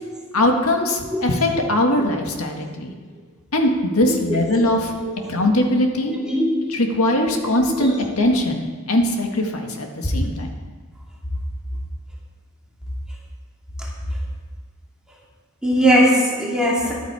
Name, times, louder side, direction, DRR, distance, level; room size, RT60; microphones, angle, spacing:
voice 1, 0.3-2.9 3.5-4.9 5.3-6.1 6.7-8.6 8.9-10.5, left 1 dB, 90° left, 2 dB, 1.9 m, -20 dB
voice 2, 4.1-4.6 5.0-5.3 6.0-6.7 7.7-7.9 15.6-16.9, equal, 5° right, -5 dB, 2.7 m, -21 dB
13.0 x 12.0 x 4.9 m, 1.5 s
head